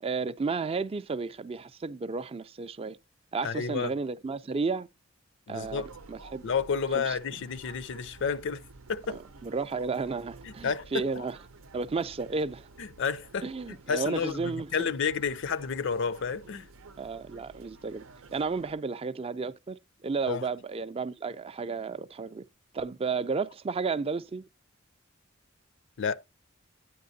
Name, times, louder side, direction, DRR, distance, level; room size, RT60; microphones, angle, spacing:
voice 1, 0.0-3.0 3.3-4.9 5.5-6.4 6.9-7.2 9.1-11.4 11.7-12.7 13.4-14.9 17.0-18.0 18.3-22.4 22.7-24.5, right 4 dB, 30° right, 0.4 m, -33 dB
voice 2, 3.4-3.9 5.5-5.9 6.4-8.6 8.9-9.2 10.4-11.3 12.8-13.5 13.9-16.7 20.3-20.5 26.0-26.2, left 6 dB, 60° left, 0.5 m, -31 dB
sound 1, 5.6-18.7, right 3 dB, 80° right, 0.6 m, -52 dB
9.7 x 9.4 x 2.7 m
head